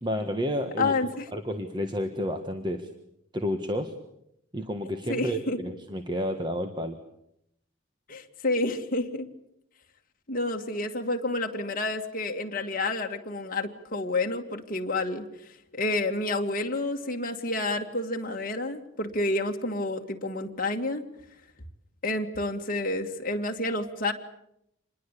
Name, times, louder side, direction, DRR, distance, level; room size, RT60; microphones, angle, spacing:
voice 1, 0.0-0.9 1.3-2.9 3.3-3.9 4.5-7.0, equal, 20° right, 6 dB, 1.5 m, -30 dB
voice 2, 0.8-1.2 5.1-5.6 8.1-9.3 10.3-21.0 22.0-24.1, left 2 dB, 40° left, 3 dB, 2.3 m, -29 dB
27.0 x 21.5 x 8.4 m, 0.78 s
head